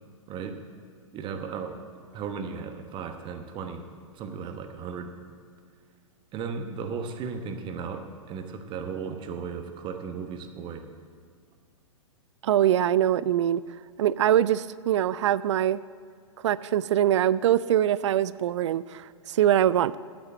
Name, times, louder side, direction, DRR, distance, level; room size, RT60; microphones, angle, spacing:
voice 1, 0.3-0.6 1.1-1.8 2.1-3.9 4.1-5.1 6.3-10.9, right 5 dB, 30° right, 6 dB, 1.1 m, -35 dB
voice 2, 12.4-13.6 14.0-15.8 16.4-20.0, right 11 dB, 60° right, 19 dB, 0.4 m, -23 dB
8.8 x 7.9 x 8.6 m, 2.1 s
figure-of-eight pair, 110°, 17 cm